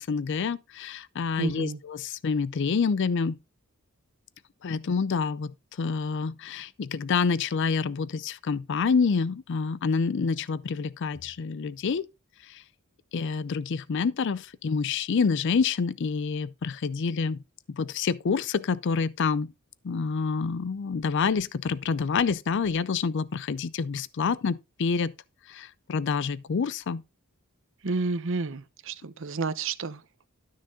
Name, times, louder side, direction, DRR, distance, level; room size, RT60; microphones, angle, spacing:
voice 1, 0.0-3.4 4.6-12.1 12.4-12.6 13.1-17.4 17.7-19.5 19.8-25.1 25.5-27.0, left 5 dB, 60° left, 0.4 m, -27 dB
voice 2, 1.4-1.8 27.8-30.0, right 3 dB, 65° right, 0.8 m, -30 dB
12.5 x 6.4 x 3.7 m
head